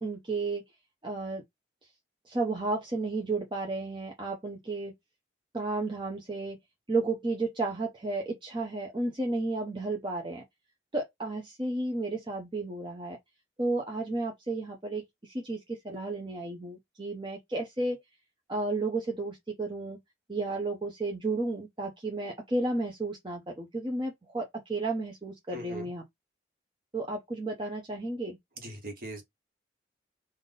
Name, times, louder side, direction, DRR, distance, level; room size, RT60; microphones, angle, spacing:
voice 1, 0.0-0.6 1.0-1.4 2.3-4.9 5.5-6.6 6.9-10.4 10.9-13.2 13.6-18.0 18.5-20.0 20.3-26.0 26.9-28.4, right 2 dB, 25° right, 0.7 m, -32 dB
voice 2, 25.5-25.9 28.6-29.2, right 1 dB, 50° right, 1.4 m, -40 dB
3.6 x 2.6 x 3.9 m
head